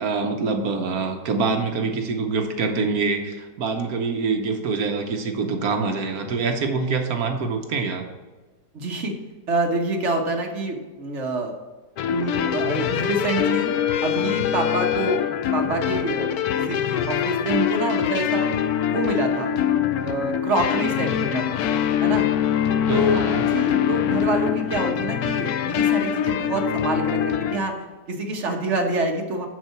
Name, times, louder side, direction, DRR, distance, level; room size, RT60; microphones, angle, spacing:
voice 1, 0.0-8.0 22.9-23.4, right 4 dB, 65° right, 4 dB, 1.3 m, -25 dB
voice 2, 8.7-9.1 9.5-11.5 12.1-13.7 14.0-18.5 18.9-19.6 20.0-21.6 22.0-22.3 22.9-27.7 28.1-29.5, right 2 dB, 50° right, 2 dB, 1.3 m, -26 dB
sound 1, 12.0-27.6, left 9 dB, 70° left, 1.0 m, -23 dB
9.4 x 4.2 x 5.8 m, 1.3 s
omnidirectional pair, 1.8 m